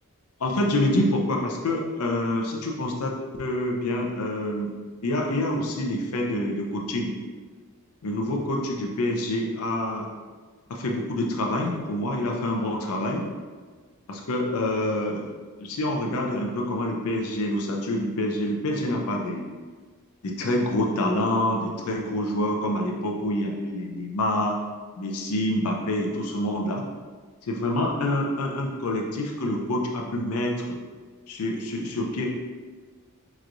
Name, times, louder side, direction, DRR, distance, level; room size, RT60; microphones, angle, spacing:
voice 1, 0.4-4.7 5.0-7.1 8.0-10.1 10.7-13.2 14.1-15.3 15.6-19.4 20.2-24.6 25.0-26.8 27.4-30.6 31.3-32.3, left 1 dB, 75° left, 0 dB, 0.5 m, -27 dB
4.6 x 3.0 x 2.5 m, 1.4 s
head